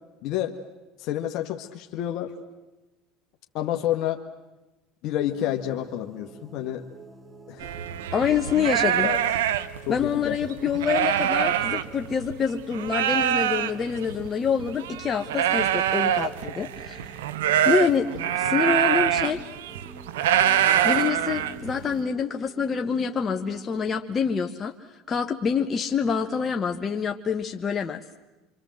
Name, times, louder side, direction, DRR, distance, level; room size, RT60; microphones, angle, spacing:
voice 1, 0.2-0.6 1.0-2.3 3.5-4.2 5.0-6.8 7.5-7.7 9.0-9.2 9.9-10.4, left 12 dB, 60° left, 3 dB, 1.5 m, -29 dB
sound 1, 5.3-24.0, right 2 dB, 20° right, 2.5 m, -47 dB
sound 2, 7.6-12.4 12.7-21.9, right 10 dB, 85° right, 0.9 m, -25 dB
voice 2, 8.1-9.1 9.9-17.2 17.6-18.1 18.3-19.4 20.8-24.7 25.1-28.0, left 6 dB, 35° left, 4 dB, 1.4 m, -26 dB
26.5 x 25.0 x 7.8 m, 1.1 s
hypercardioid pair, 85°, 0 cm